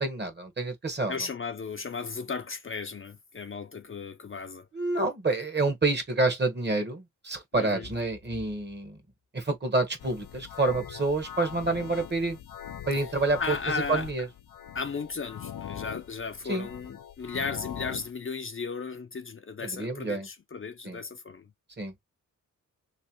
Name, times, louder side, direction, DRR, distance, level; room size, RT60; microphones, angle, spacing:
voice 1, 0.0-1.1 4.7-9.0 9.3-12.4 12.9-13.5 13.9-14.3 16.5-16.7 19.6-20.3 20.8-21.0 21.8-21.9, right 2 dB, 35° right, 1.3 m, -28 dB
voice 2, 1.1-4.7 7.5-7.9 13.0-13.1 13.4-14.1 14.7-21.5, left 5 dB, 40° left, 0.6 m, -35 dB
sound 1, 10.0-18.1, left 9 dB, 90° left, 0.5 m, -42 dB
3.3 x 3.2 x 2.9 m
wide cardioid pair, 100°, 32 cm